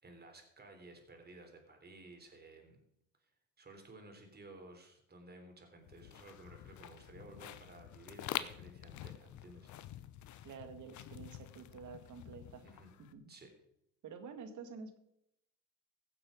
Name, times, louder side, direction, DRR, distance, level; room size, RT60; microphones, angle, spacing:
voice 1, 0.0-2.8 3.2-3.3 3.6-9.7 12.6-12.9 13.3-13.5, right 2 dB, 30° right, 4 dB, 3.5 m, -55 dB
sound 1, 5.9-13.1, left 12 dB, 60° left, 0.8 m, -47 dB
voice 2, 10.4-12.6 13.0-13.3 14.0-15.0, right 5 dB, 60° right, 8 dB, 1.9 m, -49 dB
15.5 x 7.3 x 5.1 m, 0.79 s
supercardioid pair, 80°, 33 cm